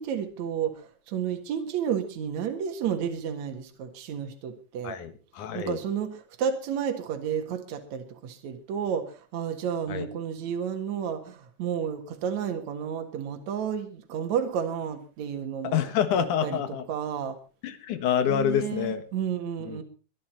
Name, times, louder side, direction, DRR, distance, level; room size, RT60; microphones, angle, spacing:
voice 1, 0.0-5.0 5.5-15.8 16.2-16.6 16.9-17.4 18.3-19.8, right 8 dB, 65° right, 5 dB, 3.0 m, -31 dB
voice 2, 4.8-5.8 9.9-10.1 15.6-16.8 17.6-19.0 19.6-19.8, left 9 dB, 75° left, 11 dB, 2.8 m, -27 dB
23.0 x 11.0 x 4.5 m, 0.36 s
omnidirectional pair, 3.6 m